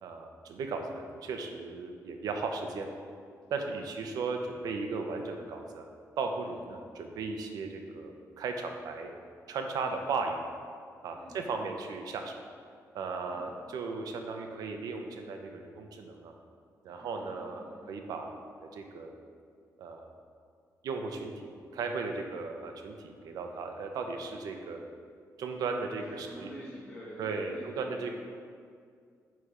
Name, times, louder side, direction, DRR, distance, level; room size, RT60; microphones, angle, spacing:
voice 1, 0.0-2.9 3.5-5.8 6.2-9.1 9.5-10.4 11.0-12.4 12.9-16.3 16.8-18.4 18.7-19.1 19.8-20.1 20.8-24.8 25.4-26.5 27.2-28.1, right 4 dB, 90° right, 4 dB, 0.7 m, -36 dB
voice 2, 3.5-3.9 6.5-6.7 9.8-10.0 11.1-11.5 13.2-13.5 16.9-17.9 26.0-28.0, equal, 15° left, -9 dB, 1.4 m, -48 dB
9.0 x 3.4 x 5.0 m, 2.2 s
wide cardioid pair, 175°, 6 cm